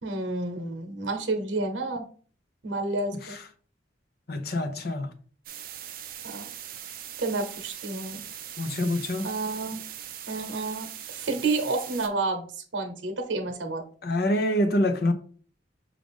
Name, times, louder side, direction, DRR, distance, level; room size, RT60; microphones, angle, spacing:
voice 1, 0.0-2.1 2.6-3.4 6.2-6.4 7.2-8.2 9.2-9.8 10.3-12.5 12.7-13.8, right 3 dB, 80° right, 0.9 m, -30 dB
voice 2, 4.3-5.1 8.6-9.3 14.0-15.1, left 1 dB, 55° left, 0.6 m, -26 dB
sound 1, 5.5-12.1, right 10 dB, 50° right, 0.5 m, -41 dB
6.1 x 2.4 x 3.6 m
head